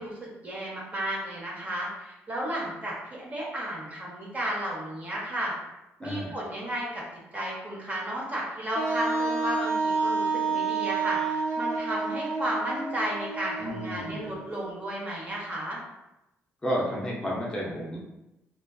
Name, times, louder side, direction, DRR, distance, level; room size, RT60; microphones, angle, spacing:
voice 1, 0.0-5.5 6.0-7.0 7.3-15.8, right 1 dB, 30° right, -4 dB, 0.8 m, -33 dB
voice 2, 6.0-6.3 13.6-14.3 16.6-18.0, equal, 15° left, -4 dB, 0.5 m, -31 dB
Wind instrument woodwind instrument, 8.7-14.5, right 4 dB, 80° right, 0.7 m, -29 dB
2.4 x 2.3 x 2.2 m, 0.91 s
cardioid pair, 100°, 5 cm